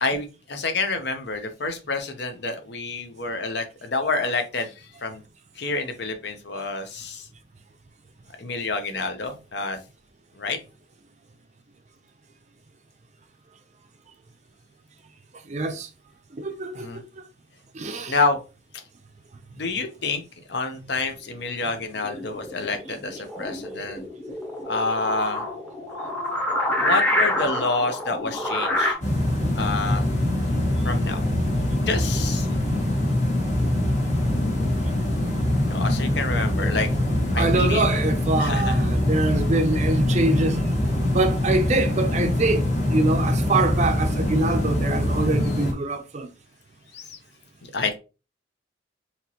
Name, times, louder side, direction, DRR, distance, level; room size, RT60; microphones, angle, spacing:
voice 1, 0.0-5.2 5.6-7.3 8.4-9.8 10.4-10.6 16.7-17.0 18.1-18.4 19.6-20.2 20.5-24.0 24.7-25.4 26.8-29.0 29.5-30.0 30.8-31.2 31.7-32.5 35.7-36.9 37.3-37.8 38.4-38.8 46.9-47.2 47.6-48.0, left 3 dB, 60° left, 0.7 m, -28 dB
voice 2, 15.5-15.9 16.3-17.0 17.8-18.1 37.4-40.6 41.1-42.6 42.9-46.3, right 2 dB, 35° right, 0.5 m, -24 dB
sound 1, 22.0-28.9, left 1 dB, 10° left, 0.8 m, -27 dB
sound 2, 29.0-45.7, left 1 dB, 35° left, 1.3 m, -23 dB
4.3 x 2.9 x 2.8 m
head